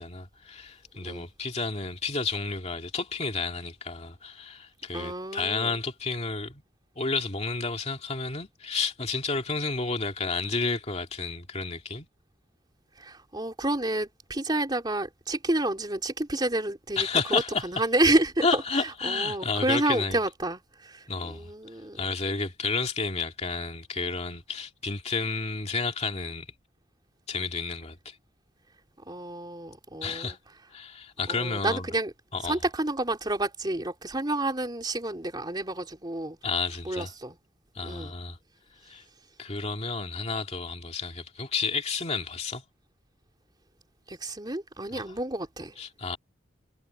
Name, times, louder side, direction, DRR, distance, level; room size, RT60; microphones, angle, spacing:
voice 1, 0.0-6.6 7.0-12.1 17.0-17.7 18.4-20.2 21.1-21.5 22.0-26.5 27.3-28.2 30.0-30.4 30.7-31.9 32.3-32.6 36.4-37.1 37.7-38.4 38.8-39.0 39.4-42.6 44.9-45.0 45.8-46.2, left 4 dB, 35° left, 2.4 m, -31 dB
voice 2, 4.9-5.8 13.0-22.0 29.0-30.4 31.3-32.1 32.4-36.4 36.8-37.4 37.8-38.1 44.1-45.7, right 2 dB, 25° right, 3.4 m, -29 dB
head